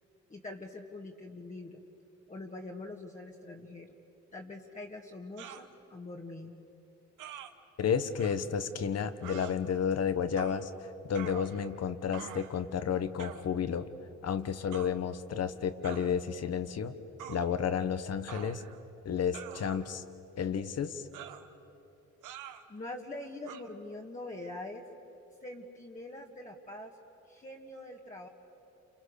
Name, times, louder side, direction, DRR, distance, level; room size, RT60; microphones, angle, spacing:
voice 1, 0.3-1.8 2.3-3.9 4.3-6.6 22.7-24.8 25.4-26.9 27.3-28.3, left 2 dB, 25° left, -2 dB, 1.9 m, -44 dB
sound 1, 5.4-5.7 7.2-7.5 8.2-8.4 9.2-9.5 10.4-10.6 11.1-11.8 12.1-12.6 13.2-13.5 14.7-14.9 15.8-16.1 17.2-17.4 18.3-18.8 19.3-20.0 21.1-21.5 22.2-22.6 23.5-23.6, right 10 dB, 85° right, 1.4 m, -45 dB
voice 2, 7.8-13.9 14.2-16.9 17.3-18.7 19.0-20.0 20.4-21.0, left 7 dB, 55° left, 11 dB, 1.4 m, -32 dB
29.5 x 28.0 x 6.7 m, 2.9 s
cardioid pair, 90°, 30 cm